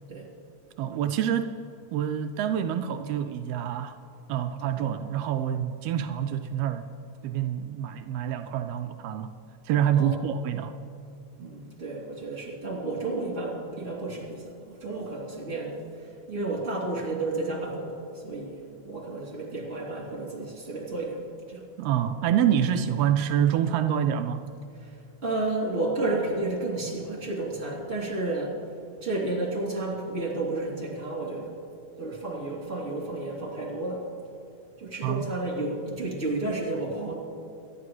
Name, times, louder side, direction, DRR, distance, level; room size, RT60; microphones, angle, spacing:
voice 1, 0.8-1.5 1.9-4.0 4.3-6.9 7.2-9.3 9.6-10.7 21.8-24.4 35.0-35.2, right 9 dB, 85° right, 7 dB, 1.4 m, -26 dB
voice 2, 11.4-21.6 24.8-28.6 29.0-31.6 32.0-34.1 34.8-37.1, right 2 dB, 25° right, -3 dB, 3.0 m, -32 dB
25.0 x 11.0 x 3.1 m, 2.6 s
omnidirectional pair, 3.3 m